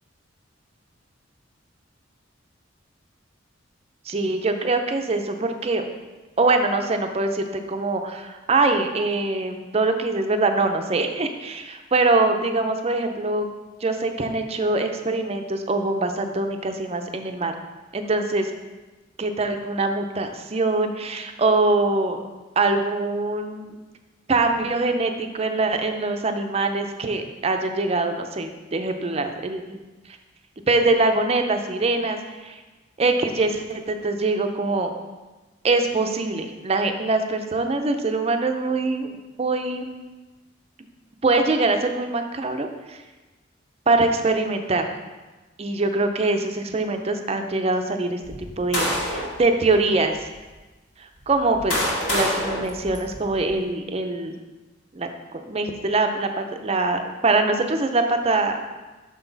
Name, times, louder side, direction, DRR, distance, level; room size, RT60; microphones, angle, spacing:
voice 1, 4.1-5.8 6.4-13.5 13.8-17.5 17.9-18.5 19.2-22.2 22.6-23.7 24.3-29.8 30.7-32.6 33.0-34.9 35.6-39.9 41.2-43.0 43.9-44.8 45.6-48.2 48.6-50.3 51.3-54.3 54.9-55.1 55.5-58.6, right 3 dB, 30° right, 6 dB, 0.5 m, -23 dB
sound 1, 48.2-49.4 50.2-50.3 51.2-53.5, equal, 70° left, 2.1 m, -27 dB
6.3 x 6.0 x 3.9 m, 1.2 s
head